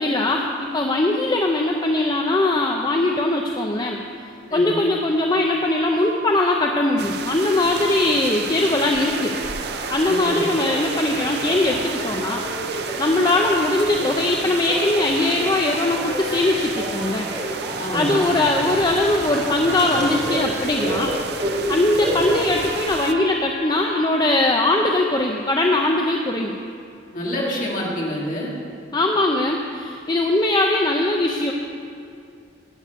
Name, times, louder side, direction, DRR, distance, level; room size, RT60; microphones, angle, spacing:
voice 1, 0.0-4.0 4.5-9.3 9.9-12.4 13.0-17.3 17.9-21.2 21.7-26.5 28.9-31.5, left 2 dB, 20° left, 1 dB, 0.6 m, -21 dB
voice 2, 4.5-4.8 10.0-10.4 17.8-18.2 27.1-28.5, equal, 45° left, -4 dB, 2.5 m, -27 dB
Telephone, 5.7-6.2 9.0-23.2 23.7-24.2, right 1 dB, 30° right, 3.2 m, -31 dB
sound 1, 7.0-23.1, right 6 dB, 60° right, 0.5 m, -33 dB
sound 2, 7.1-22.8, equal, 5° left, 2.5 m, -39 dB
12.0 x 6.6 x 8.5 m, 2.4 s
head